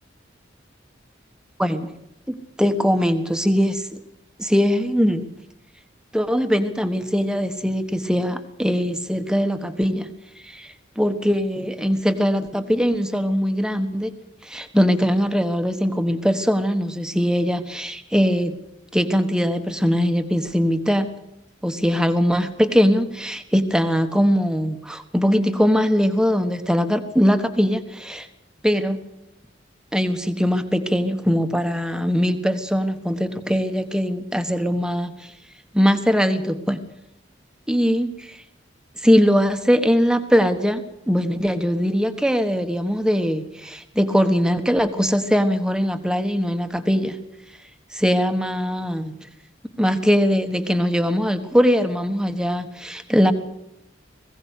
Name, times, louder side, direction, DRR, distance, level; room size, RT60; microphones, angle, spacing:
voice 1, 1.6-1.9 2.3-3.9 4.4-5.3 6.1-10.1 10.4-14.1 14.4-18.5 18.9-21.1 21.6-28.3 28.6-29.0 29.9-35.3 35.7-36.8 37.7-38.4 39.0-47.2 47.9-49.3 49.8-53.3, equal, 5° right, 8 dB, 1.3 m, -21 dB
21.0 x 16.5 x 8.4 m, 0.83 s
head